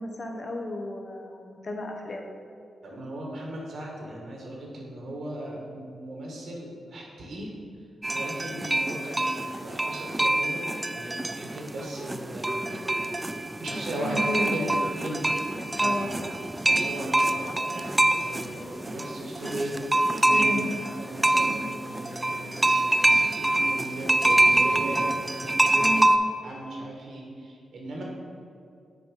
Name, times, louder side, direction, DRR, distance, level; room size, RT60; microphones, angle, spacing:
voice 1, 0.0-2.3 13.7-14.9 15.8-16.3 20.3-20.6 21.5-21.6 25.7-26.1, left 1 dB, 50° left, 2 dB, 1.0 m, -33 dB
voice 2, 2.8-7.5 8.1-13.3 13.6-15.3 15.8-16.1 16.6-19.8 20.2-20.5 20.8-26.0 26.4-28.0, right 1 dB, 75° right, -2 dB, 1.5 m, -37 dB
sound 1, 8.0-26.2, right 1 dB, 20° right, 0.4 m, -25 dB
6.6 x 3.9 x 5.3 m, 2.3 s
supercardioid pair, 45°, 0 cm